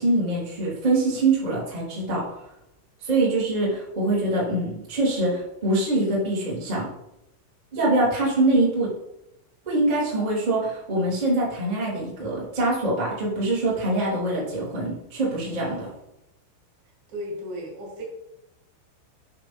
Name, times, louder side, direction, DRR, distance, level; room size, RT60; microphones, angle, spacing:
voice 1, 0.0-2.2 3.0-6.9 7.7-8.9 9.6-15.9, right 2 dB, 15° right, -7 dB, 1.3 m, -24 dB
voice 2, 17.1-18.0, equal, 50° right, -3 dB, 3.7 m, -34 dB
9.2 x 6.0 x 3.4 m, 0.87 s
omnidirectional pair, 5.8 m